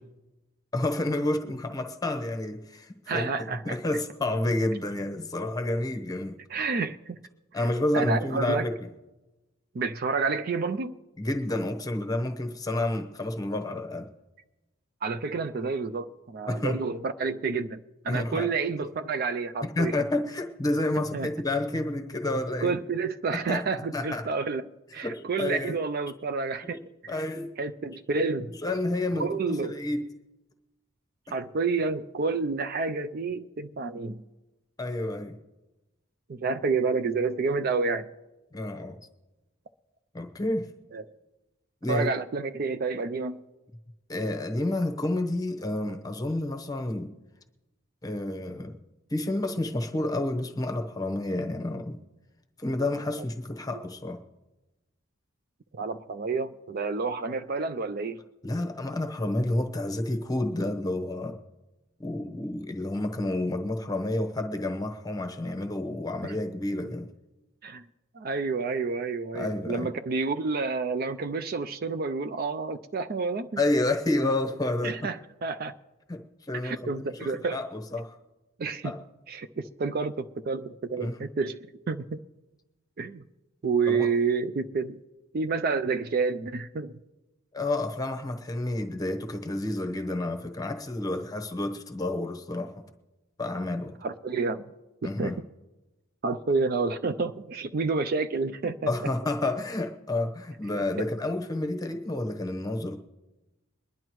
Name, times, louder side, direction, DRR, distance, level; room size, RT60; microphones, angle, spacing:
voice 1, 0.7-3.3 3.6-6.4 7.5-8.7 11.2-14.1 16.5-16.8 18.1-18.5 19.6-22.7 23.5-23.6 23.9-24.2 25.0-25.8 26.6-26.8 27.1-27.5 28.6-30.1 34.8-35.4 38.5-39.0 40.1-40.7 41.8-42.1 44.1-47.1 48.0-48.8 49.1-52.0 52.6-54.2 58.4-61.3 62.0-67.1 69.3-69.9 73.6-75.0 76.1-78.2 78.8-79.0 81.0-81.2 83.9-84.1 87.5-92.7 93.4-94.0 95.0-95.4 98.9-103.0, left 2 dB, 20° left, 0.9 m, -30 dB
voice 2, 3.1-3.8 6.5-7.2 7.9-8.7 9.7-11.0 15.0-19.9 21.1-21.3 22.6-24.6 24.9-26.8 27.0-27.1 27.6-28.5 29.2-29.8 31.3-34.2 36.3-38.1 40.9-41.0 41.9-43.4 53.2-53.3 55.7-58.2 66.2-66.3 67.6-67.8 68.1-73.6 74.8-75.7 76.6-77.6 78.6-78.9 79.3-81.6 81.9-82.2 83.0-83.2 83.6-85.0 85.3-86.9 94.0-94.7 95.0-95.3 96.2-98.9, right 4 dB, 45° right, 0.4 m, -29 dB
22.5 x 10.5 x 3.1 m
head